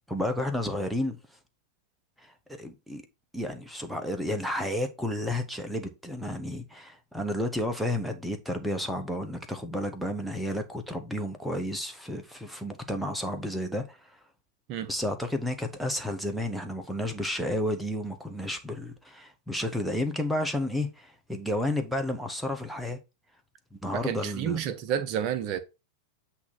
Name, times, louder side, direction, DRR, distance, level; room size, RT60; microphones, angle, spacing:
voice 1, 0.1-1.2 2.2-3.0 3.3-14.2 14.9-23.0 23.7-24.6, left 1 dB, ahead, 1.0 m, -31 dB
voice 2, 23.9-25.6, right 9 dB, 40° right, 0.7 m, -30 dB
8.4 x 2.9 x 5.7 m
figure-of-eight pair, 90°, 0 cm